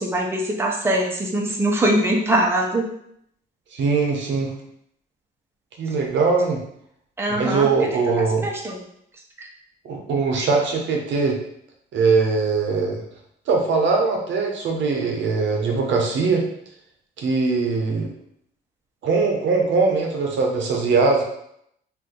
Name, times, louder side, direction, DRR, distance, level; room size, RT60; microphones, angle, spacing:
voice 1, 0.0-2.9 7.2-7.9 8.1-8.8 9.4-9.5, right 1 dB, 10° right, -2 dB, 0.6 m, -22 dB
voice 2, 3.7-4.5 5.8-6.6 7.3-8.5 9.8-11.4 11.9-13.0 13.5-16.4 17.2-18.1 19.0-21.2, right 4 dB, 70° right, 1 dB, 0.7 m, -21 dB
2.6 x 2.5 x 3.7 m, 0.72 s
cardioid pair, 90°, 20 cm